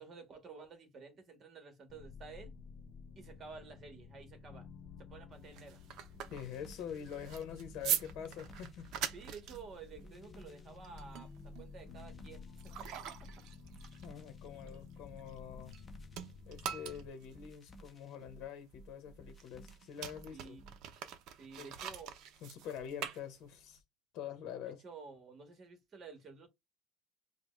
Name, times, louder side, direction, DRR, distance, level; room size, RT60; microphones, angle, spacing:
voice 1, 0.0-2.5 3.1-4.7 5.0-5.8 9.1-13.3 20.3-20.6 21.4-22.1 24.6-26.5, right 5 dB, 25° right, 1.6 m, -52 dB
sound 1, 1.9-17.1, left 5 dB, 35° left, 0.6 m, -53 dB
sound 2, 5.3-15.8 16.1-23.8, right 10 dB, 55° right, 0.7 m, -43 dB
sound 3, 6.1-20.8, right 1 dB, 15° left, 0.9 m, -57 dB
voice 2, 6.3-8.9 14.0-15.7 16.5-20.6 21.6-21.7 22.4-23.8 24.1-24.8, left 8 dB, 55° left, 1.0 m, -45 dB
5.0 x 2.3 x 3.2 m
cardioid pair, 165°, 0 cm